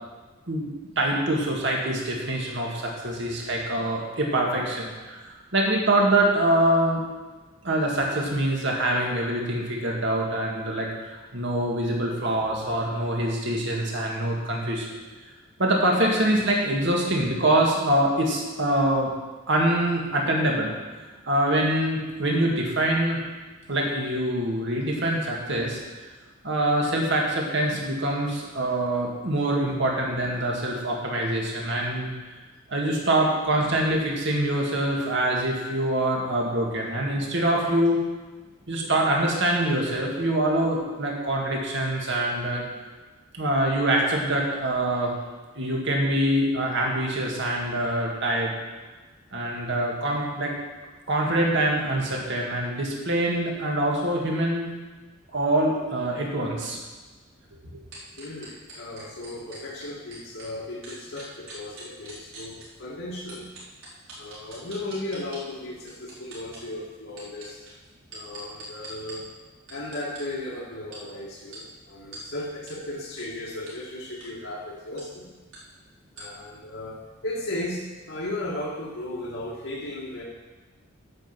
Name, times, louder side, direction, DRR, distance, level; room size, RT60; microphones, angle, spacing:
voice 1, 0.5-7.0 7.6-14.9 15.6-19.1 19.5-20.7 21.3-23.2 23.7-25.8 26.4-32.1 32.7-38.0 38.7-42.6 43.3-45.1 45.5-48.5 49.3-50.5 51.1-54.7 55.3-56.8, right 1 dB, 55° right, -1 dB, 2.2 m, -24 dB
sound 1, 57.9-60.5 60.8-62.6 63.3-65.4 65.9-66.6 67.1-69.1 69.7-70.2 70.9-71.0 71.5-71.6 72.1-72.2 72.7-72.8 73.2-73.3 73.7-73.8 74.1-74.3 75.0-75.1 75.5-75.6 76.2-76.3, right 3 dB, 80° right, 3.9 m, -43 dB
voice 2, 58.2-63.5 64.2-67.6 68.1-69.2 69.7-75.3 76.1-77.0 77.2-80.2, left 1 dB, 65° left, -6 dB, 1.7 m, -35 dB
8.9 x 6.2 x 7.5 m, 1.3 s
head